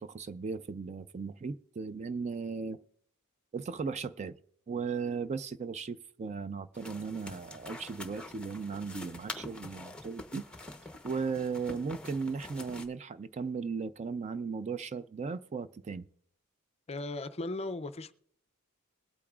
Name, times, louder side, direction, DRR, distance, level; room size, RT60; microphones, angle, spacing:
voice 1, 0.0-2.8 3.5-4.3 4.7-10.4 11.0-16.1, right 5 dB, 30° right, 0.3 m, -36 dB
sound 1, 6.7-12.9, left 2 dB, 5° left, 0.8 m, -46 dB
voice 2, 16.9-18.1, left 2 dB, 30° left, 0.5 m, -37 dB
21.5 x 8.5 x 2.4 m
head